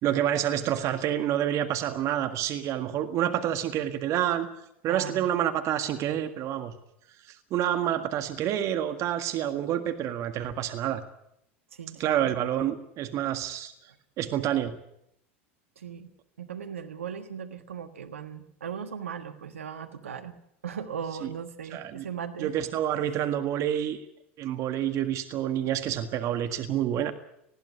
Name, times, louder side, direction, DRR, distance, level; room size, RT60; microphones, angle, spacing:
voice 1, 0.0-4.5 4.8-6.7 7.3-11.0 12.0-13.7 14.2-14.8 21.7-22.1 22.4-24.0 24.4-27.1, right 11 dB, 50° right, 7 dB, 1.8 m, -28 dB
voice 2, 4.9-5.2 11.7-12.3 15.8-16.1 16.4-20.4 20.6-22.5, right 7 dB, 85° right, 7 dB, 1.4 m, -38 dB
20.0 x 15.0 x 9.7 m, 0.78 s
hypercardioid pair, 85°, 7 cm